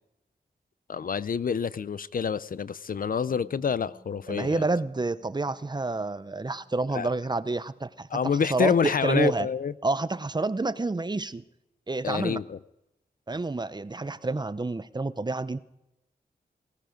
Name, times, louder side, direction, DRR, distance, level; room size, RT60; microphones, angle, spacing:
voice 1, 0.9-4.7 6.9-7.1 8.1-9.7 12.0-12.6, left 6 dB, 60° left, 18 dB, 0.5 m, -27 dB
Bass guitar, 3.3-9.5, right 2 dB, 25° left, 6.3 m, -60 dB
voice 2, 4.3-9.5 9.8-11.4 11.9-12.4 13.3-15.6, right 3 dB, 25° right, 14 dB, 0.7 m, -29 dB
18.5 x 14.0 x 5.1 m, 0.88 s
wide cardioid pair, 80°, 17 cm